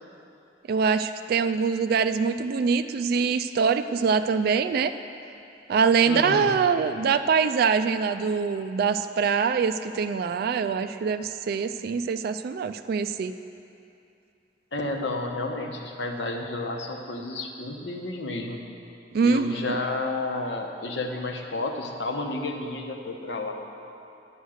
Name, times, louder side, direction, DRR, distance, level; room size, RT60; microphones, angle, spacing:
voice 1, 0.7-4.9 5.7-13.3 19.1-19.8, right 5 dB, 55° right, 9 dB, 0.3 m, -24 dB
voice 2, 6.1-6.5 14.7-18.6 19.2-23.5, left 2 dB, 70° left, 2 dB, 1.1 m, -31 dB
10.0 x 8.0 x 6.4 m, 2.7 s
head